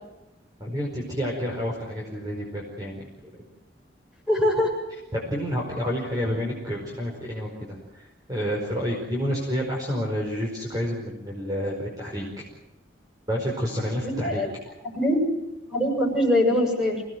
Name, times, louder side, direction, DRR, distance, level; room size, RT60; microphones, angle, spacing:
voice 1, 0.6-3.0 3.3-3.4 5.1-12.5 13.3-14.4, equal, 20° right, -1 dB, 4.9 m, -29 dB
voice 2, 4.3-4.7 14.0-14.5 14.9-15.3 15.7-17.0, left 1 dB, 5° right, 0 dB, 7.2 m, -22 dB
28.0 x 18.5 x 7.9 m, 0.95 s
head